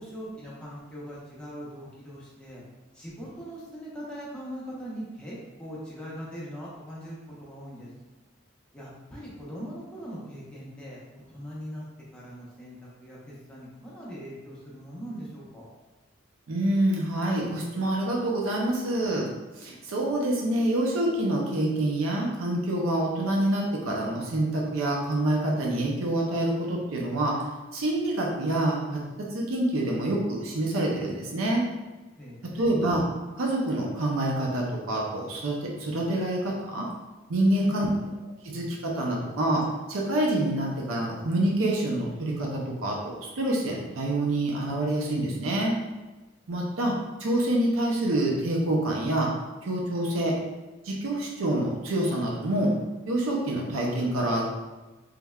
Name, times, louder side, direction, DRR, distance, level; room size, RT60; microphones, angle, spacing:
voice 1, 0.0-2.6 2.9-7.9 8.7-11.8 12.1-15.7 32.2-32.7 37.4-37.9, equal, 5° left, -7 dB, 0.8 m, -41 dB
voice 2, 16.5-19.3 19.6-27.4 27.7-31.6 32.4-33.0 33.3-36.9 37.3-37.9 38.4-45.7 46.5-46.9 47.2-49.3 49.6-50.4 50.8-52.7 53.1-54.5, right 1 dB, 85° right, -1 dB, 0.6 m, -27 dB
3.4 x 3.2 x 2.3 m, 1.2 s
head